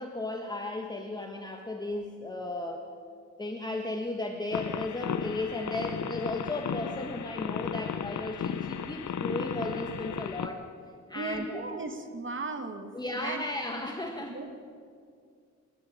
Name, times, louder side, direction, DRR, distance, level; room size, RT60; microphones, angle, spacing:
voice 1, 0.0-2.9 3.4-10.6 11.1-11.6 12.9-14.4, left 2 dB, 15° left, 2 dB, 1.6 m, -35 dB
sound 1, 4.5-10.5, left 7 dB, 70° left, 1.1 m, -34 dB
voice 2, 11.1-13.4 14.3-14.6, right 3 dB, 40° right, 6 dB, 2.2 m, -37 dB
28.0 x 13.0 x 8.8 m, 2.3 s
wide cardioid pair, 135°, 30 cm